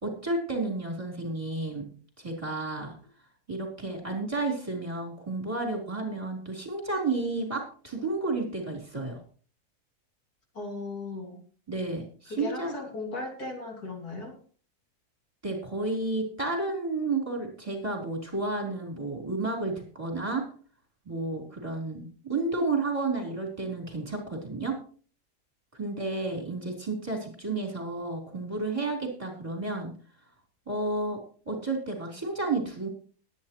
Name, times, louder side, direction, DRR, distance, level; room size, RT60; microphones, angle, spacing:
voice 1, 0.0-1.9 2.2-3.0 3.5-9.2 11.7-12.8 15.4-20.4 21.1-24.8 25.7-29.9 30.7-31.2 31.5-32.9, right 3 dB, 20° right, 0 dB, 4.0 m, -31 dB
voice 2, 10.6-11.4 12.3-14.4, left 2 dB, 75° left, 1 dB, 3.4 m, -37 dB
21.0 x 9.4 x 3.1 m, 0.41 s
omnidirectional pair, 1.7 m